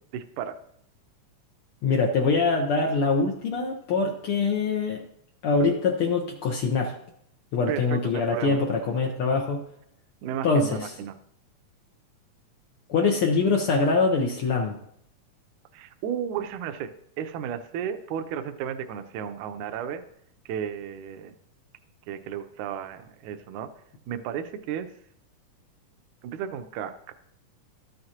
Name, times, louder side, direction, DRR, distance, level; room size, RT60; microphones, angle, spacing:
voice 1, 0.1-0.6 7.7-8.6 10.2-11.2 15.7-20.0 20.5-21.3 22.1-23.7 24.1-24.9 26.2-27.1, right 8 dB, 75° right, 8 dB, 2.0 m, -33 dB
voice 2, 1.8-5.1 5.4-7.0 7.5-9.6 10.4-10.9 12.9-14.8, left 4 dB, 85° left, 0 dB, 1.2 m, -24 dB
13.0 x 7.8 x 2.9 m, 0.71 s
omnidirectional pair, 3.7 m